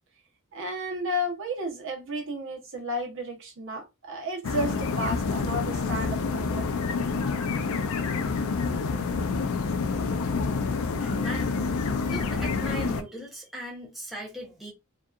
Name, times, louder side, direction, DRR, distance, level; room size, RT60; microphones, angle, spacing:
voice 1, 0.5-6.7, equal, 60° right, 0.9 m, -32 dB
sound 1, 4.4-13.0, left 4 dB, 70° left, 0.4 m, -28 dB
voice 2, 11.0-11.6 12.0-14.7, equal, ahead, 0.6 m, -38 dB
2.7 x 2.3 x 2.3 m
head